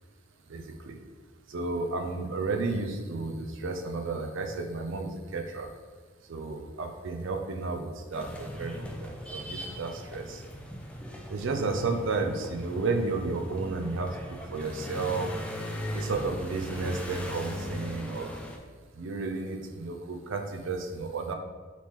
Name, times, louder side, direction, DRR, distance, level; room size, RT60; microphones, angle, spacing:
voice 1, 0.5-1.0 1.5-5.7 6.3-10.4 11.3-15.3 15.9-18.3 19.0-21.3, right 3 dB, 65° right, 4 dB, 0.5 m, -32 dB
sound 1, 8.1-18.6, equal, 5° left, 0.4 m, -39 dB
4.1 x 3.0 x 3.6 m, 1.4 s
head